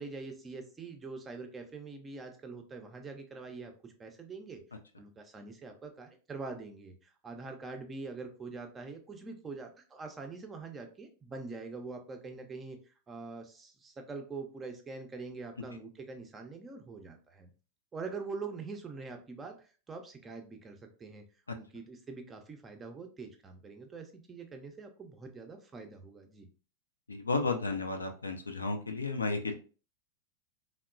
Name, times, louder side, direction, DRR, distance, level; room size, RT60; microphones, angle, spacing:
voice 1, 0.0-4.6 5.0-17.5 17.9-21.2 21.5-26.5, right 4 dB, 20° right, 4 dB, 0.5 m, -44 dB
voice 2, 27.1-29.5, left 3 dB, 75° left, 5 dB, 0.4 m, -33 dB
2.8 x 2.0 x 2.4 m, 0.37 s
figure-of-eight pair, 90°, 0 cm